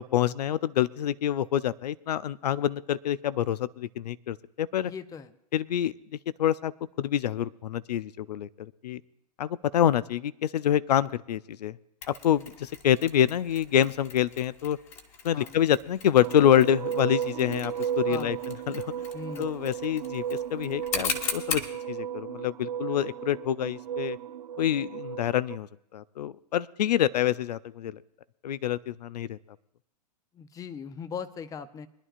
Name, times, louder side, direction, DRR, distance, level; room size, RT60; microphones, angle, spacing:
voice 1, 0.0-4.9 5.5-5.9 6.4-6.7 7.0-9.0 9.4-11.8 12.1-14.8 15.2-18.4 18.7-18.8 19.4-21.6 21.9-24.2 24.6-28.0 28.4-29.4, left 10 dB, 75° left, 19 dB, 0.5 m, -26 dB
voice 2, 4.8-5.3 15.3-15.6 18.1-18.4 19.1-19.5 30.3-31.9, left 6 dB, 15° left, 13 dB, 0.6 m, -39 dB
Mechanisms, 12.0-21.8, left 5 dB, 30° left, 1.7 m, -39 dB
sound 1, 16.2-25.6, right 9 dB, 80° right, 0.6 m, -34 dB
24.0 x 11.0 x 2.4 m, 0.76 s
hypercardioid pair, 115°, 21 cm